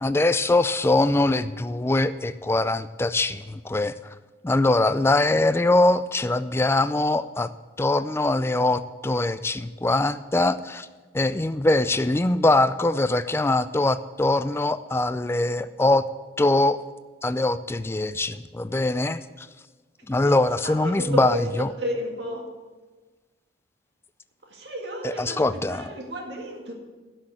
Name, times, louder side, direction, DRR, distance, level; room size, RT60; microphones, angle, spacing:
voice 1, 0.0-3.9 4.4-7.5 7.8-10.9 11.1-16.0 16.4-16.8 17.2-19.5 20.1-21.7 25.0-25.9, left 2 dB, 15° left, 13 dB, 0.3 m, -22 dB
voice 2, 20.1-22.5 24.4-26.7, equal, 60° right, 1 dB, 2.0 m, -33 dB
11.5 x 6.4 x 7.8 m, 1.3 s
head